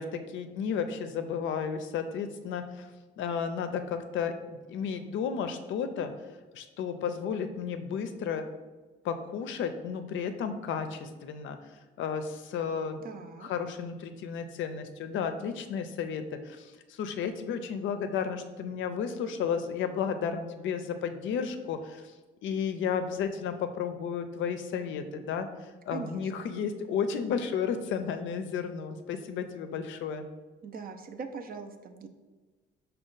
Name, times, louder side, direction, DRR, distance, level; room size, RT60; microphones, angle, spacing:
voice 1, 0.0-2.9 3.2-6.1 6.5-8.5 9.0-11.6 12.0-13.1 13.4-22.0 22.4-30.3, left 7 dB, 75° left, 8 dB, 0.4 m, -33 dB
voice 2, 13.0-13.5 25.9-26.3 30.6-32.1, right 5 dB, 50° right, 7 dB, 0.5 m, -41 dB
5.0 x 2.3 x 3.8 m, 1.3 s
cardioid pair, 90°, 20 cm